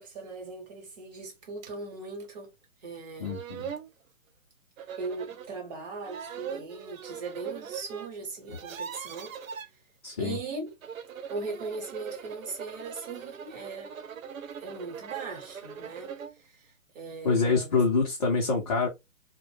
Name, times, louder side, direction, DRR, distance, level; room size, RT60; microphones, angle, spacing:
voice 1, 0.0-2.5 2.8-3.4 5.0-9.3 10.2-10.7 11.3-13.9 14.6-17.8, right 3 dB, 30° right, 1.0 m, -39 dB
sound 1, 1.6-1.7 2.2-2.3 2.9-3.0 3.2-3.9 4.8-5.5 6.0-8.1 8.4-9.7 10.7-16.4, right 7 dB, 75° right, 0.6 m, -41 dB
voice 2, 3.2-3.7 10.0-10.4 17.2-18.9, left 4 dB, 30° left, 0.5 m, -26 dB
2.1 x 2.1 x 3.2 m
hypercardioid pair, 150°, 41 cm